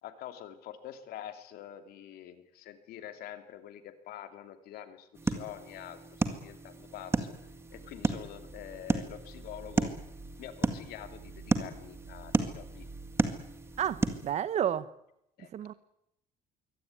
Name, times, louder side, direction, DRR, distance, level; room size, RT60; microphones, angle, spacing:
voice 1, 0.0-6.0 6.3-7.3 7.7-9.9 10.4-12.8 15.4-15.5, left 11 dB, 70° left, 8 dB, 2.8 m, -46 dB
sound 1, 5.1-14.3, right 3 dB, 15° right, 1.9 m, -33 dB
voice 2, 13.8-14.9 15.5-15.7, right 10 dB, 45° right, 15 dB, 1.1 m, -31 dB
23.5 x 17.5 x 9.6 m, 0.80 s
cardioid pair, 165°, 16 cm